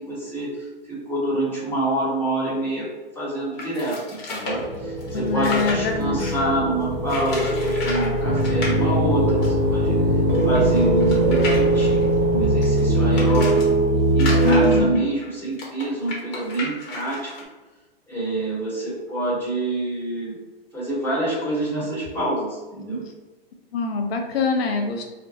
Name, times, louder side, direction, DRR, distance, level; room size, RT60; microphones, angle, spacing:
voice 1, 0.0-2.9 3.1-10.0 10.4-13.6 14.1-17.3 18.1-20.4 20.7-23.0, right 1 dB, 5° left, -7 dB, 1.2 m, -27 dB
sound 1, 3.6-6.5 7.1-8.1 8.4-8.7 9.4-9.5 9.7-9.8 10.3-13.7 14.1-17.4, left 2 dB, 35° left, 1.0 m, -33 dB
sound 2, 4.5-14.8, right 1 dB, 30° right, 0.7 m, -20 dB
voice 2, 5.1-6.3 14.4-15.0 23.7-25.1, left 4 dB, 80° left, 3 dB, 0.7 m, -24 dB
2.5 x 2.2 x 3.8 m, 1.2 s
hypercardioid pair, 135°, 30 cm